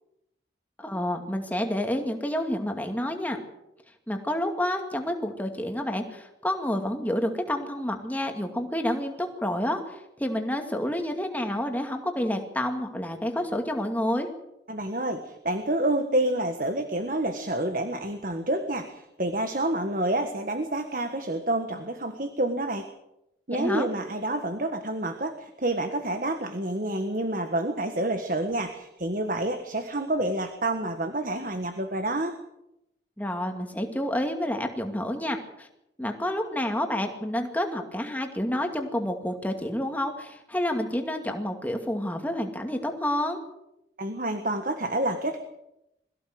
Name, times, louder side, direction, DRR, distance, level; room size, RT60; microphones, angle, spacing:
voice 1, 0.8-3.4 4.1-14.3 23.5-23.9 33.2-35.7 36.0-43.4, left 1 dB, 10° left, 4 dB, 2.3 m, -29 dB
voice 2, 14.7-22.8 23.5-32.3 44.0-45.4, right 1 dB, 50° right, 7 dB, 1.5 m, -28 dB
22.5 x 15.5 x 7.9 m, 0.85 s
head